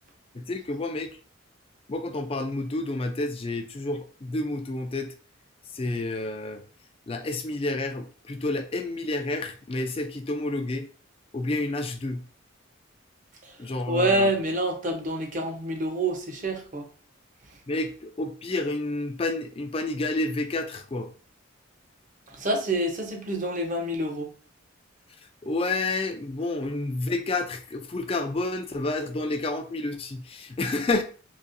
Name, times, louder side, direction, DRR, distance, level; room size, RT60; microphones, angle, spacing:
voice 1, 0.3-1.1 1.9-5.1 5.7-6.6 7.1-10.9 11.3-12.2 13.6-14.3 17.7-21.1 25.4-31.0, left 2 dB, 25° left, 0.4 m, -29 dB
voice 2, 13.9-16.9 22.3-24.3, right 1 dB, 40° right, 0.7 m, -27 dB
4.0 x 3.0 x 2.5 m
head